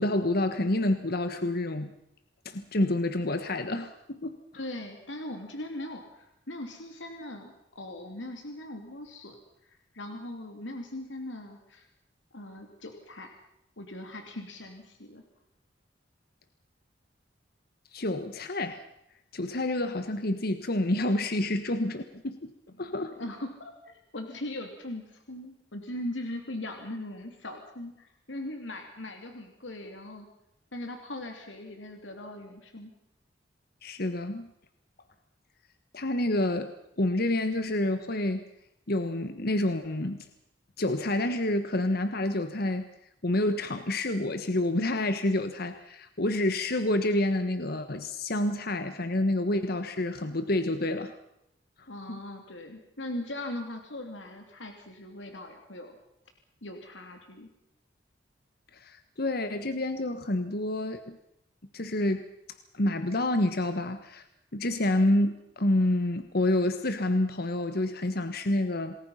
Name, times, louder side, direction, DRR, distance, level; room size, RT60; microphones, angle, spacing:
voice 1, 0.0-1.9 2.4-4.3 17.9-18.8 19.3-22.5 22.8-23.2 33.8-34.5 35.9-36.7 37.0-38.4 38.9-40.3 40.8-42.8 43.2-51.1 51.8-52.2 58.7-61.2 61.7-62.2 62.7-64.2 64.5-69.0, left 1 dB, 55° left, 9 dB, 1.4 m, -28 dB
voice 2, 4.5-9.4 9.6-11.9 12.3-13.3 13.8-15.2 22.8-30.3 30.7-32.9 51.9-55.9 56.6-57.5, left 1 dB, 90° left, 4 dB, 3.0 m, -40 dB
27.5 x 20.5 x 5.7 m, 0.81 s
head